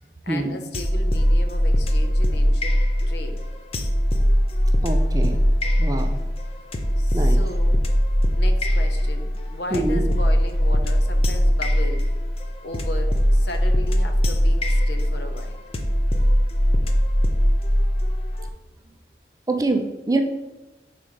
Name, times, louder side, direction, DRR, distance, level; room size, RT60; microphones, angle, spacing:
voice 1, 0.2-3.4 7.0-7.8 8.4-12.1 12.6-15.6, left 2 dB, 65° left, 6 dB, 0.8 m, -36 dB
sound 1, 0.7-18.5, equal, 35° left, 0.6 m, -20 dB
voice 2, 4.8-5.4 5.8-6.2 7.1-7.4 9.7-10.0 19.5-20.2, right 2 dB, 20° right, 6 dB, 0.5 m, -24 dB
5.6 x 4.3 x 5.0 m, 1.1 s
head